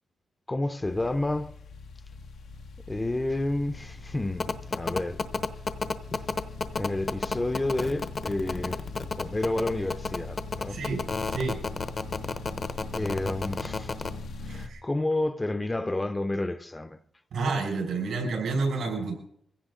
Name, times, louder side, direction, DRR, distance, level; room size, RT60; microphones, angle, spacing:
voice 1, 0.5-1.6 2.9-5.2 6.7-8.8 9.2-10.8 12.9-13.9 14.4-17.0, left 2 dB, 15° left, 0.7 m, -30 dB
sound 1, 0.8-14.7, left 3 dB, 90° left, 1.2 m, -41 dB
sound 2, 4.4-14.1, left 4 dB, 40° left, 0.9 m, -30 dB
voice 2, 10.7-11.0 11.3-11.6 14.5-14.8 17.3-19.1, right 3 dB, 85° right, 5.9 m, -29 dB
22.5 x 16.0 x 3.8 m
cardioid pair, 110°, 0 cm